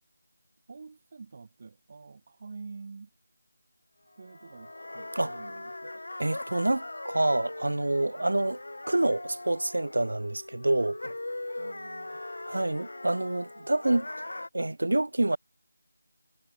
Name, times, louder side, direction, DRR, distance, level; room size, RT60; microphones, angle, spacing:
voice 1, 0.7-3.1 4.1-5.9 8.1-8.3 11.0-11.1 11.6-12.2 13.5-13.7, right 4 dB, 25° right, 2.7 m, -47 dB
sound 1, 4.2-14.5, left 2 dB, 80° left, 2.0 m, -40 dB
voice 2, 6.2-8.6 8.9-11.0 12.5-14.1 14.5-15.4, right 2 dB, 80° right, 0.3 m, -27 dB
figure-of-eight pair, 180°, 0 cm